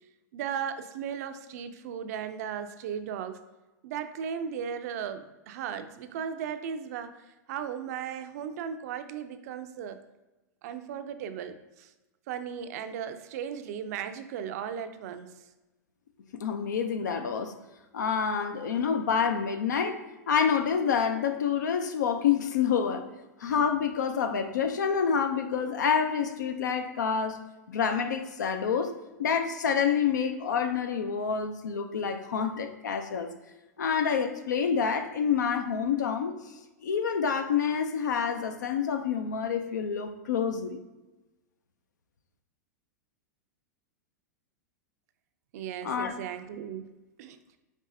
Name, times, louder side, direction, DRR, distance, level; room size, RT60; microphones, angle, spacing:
voice 1, 0.3-3.4 3.8-10.0 10.6-11.9 12.3-15.3 45.5-46.9 47.2-47.4, right 8 dB, 60° right, 10 dB, 0.4 m, -36 dB
voice 2, 16.3-17.5 17.9-23.1 23.4-27.4 27.7-28.9 29.2-33.3 33.8-36.4 36.8-40.8 45.8-46.1, left 7 dB, 80° left, 7 dB, 0.5 m, -28 dB
5.3 x 3.1 x 2.6 m, 1.1 s
hypercardioid pair, 105°, 10 cm